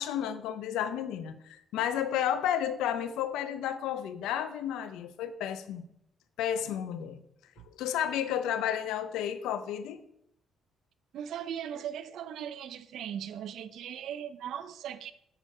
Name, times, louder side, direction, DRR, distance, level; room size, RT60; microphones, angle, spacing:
voice 1, 0.0-5.8 6.4-7.2 7.8-10.0, left 10 dB, 85° left, 11 dB, 0.6 m, -32 dB
voice 2, 11.1-15.1, right 9 dB, 75° right, 14 dB, 0.5 m, -38 dB
7.4 x 5.0 x 5.3 m, 0.76 s
supercardioid pair, 70°, 0 cm